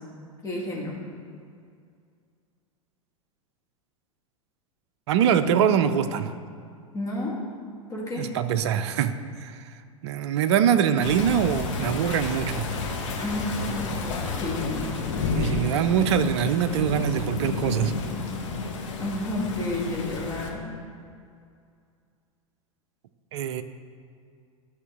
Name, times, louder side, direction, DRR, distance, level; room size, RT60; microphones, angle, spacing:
voice 1, 0.4-0.9 6.9-7.4 7.9-8.3 13.1-14.9 19.0-20.6, left 1 dB, 20° left, -3 dB, 1.9 m, -31 dB
voice 2, 5.1-6.3 8.2-9.6 10.0-12.7 15.3-17.9 23.3-23.6, right 8 dB, 50° right, 10 dB, 0.5 m, -23 dB
sound 1, 11.0-20.5, left 4 dB, 60° left, 1.2 m, -31 dB
10.5 x 6.3 x 3.7 m, 2.3 s
figure-of-eight pair, 90°, 18 cm